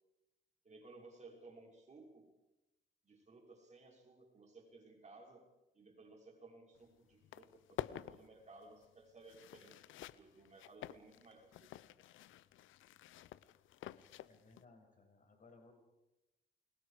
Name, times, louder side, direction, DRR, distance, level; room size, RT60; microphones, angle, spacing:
voice 1, 0.6-2.3 3.0-5.5 5.7-11.7, right 3 dB, 35° right, 1 dB, 6.0 m, -59 dB
sound 1, 6.8-6.9 7.1-14.6, left 12 dB, 80° left, 0.8 m, -50 dB
voice 2, 14.3-15.7, left 3 dB, 40° left, 3 dB, 6.5 m, -62 dB
29.5 x 22.5 x 5.1 m, 0.94 s
cardioid pair, 90°, 20 cm